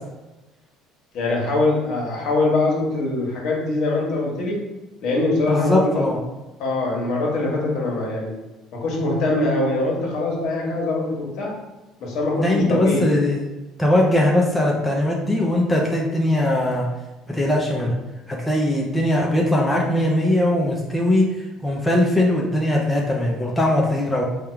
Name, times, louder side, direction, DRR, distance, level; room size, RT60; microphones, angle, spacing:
voice 1, 1.1-4.6 5.0-6.0 6.6-8.3 8.7-11.5 12.0-13.0, left 2 dB, 65° left, -2 dB, 1.3 m, -23 dB
voice 2, 5.5-6.2 12.3-13.4 13.8-16.8 17.3-17.9 18.3-21.3 21.6-24.2, left 1 dB, 10° left, -2 dB, 0.6 m, -20 dB
3.5 x 2.3 x 4.4 m, 1.1 s
cardioid pair, 115°, 0 cm